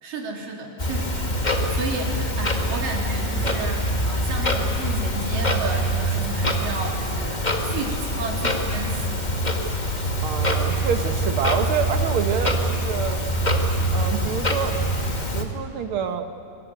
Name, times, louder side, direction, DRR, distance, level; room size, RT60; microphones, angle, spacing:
voice 1, 0.0-9.1, right 3 dB, 85° right, 0 dB, 4.9 m, -32 dB
Clock, 0.8-15.4, equal, 25° left, 1.0 m, -24 dB
voice 2, 10.2-13.2 13.9-14.8 15.3-16.3, right 7 dB, 55° right, 7 dB, 1.6 m, -27 dB
23.5 x 22.0 x 9.3 m, 2.5 s
omnidirectional pair, 3.8 m